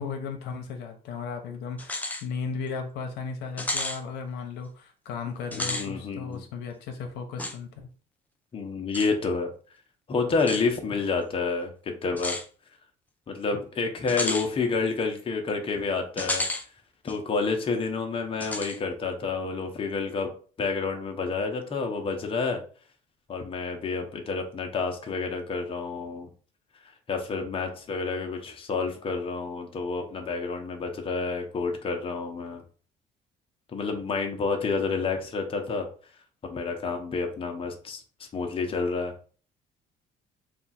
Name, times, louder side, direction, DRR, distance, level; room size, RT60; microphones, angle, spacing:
voice 1, 0.0-7.7, left 5 dB, 85° left, 5 dB, 0.7 m, -35 dB
sound 1, 1.8-2.2 2.7-2.8 3.6-4.0 5.4-5.9 7.4-7.6 8.9-9.1 10.4-10.6 12.2-12.5 14.1-14.5 16.2-16.6 17.1-17.2 18.4-18.8, left 2 dB, 10° left, 0.5 m, -31 dB
voice 2, 5.5-6.4 8.5-9.5 10.1-12.4 13.3-16.4 17.0-20.3 20.6-22.6 23.3-26.3 27.1-32.6 33.7-35.9 36.5-39.1, left 4 dB, 30° left, 3 dB, 0.8 m, -29 dB
3.4 x 2.4 x 4.1 m, 0.40 s
cardioid pair, 110°, 17 cm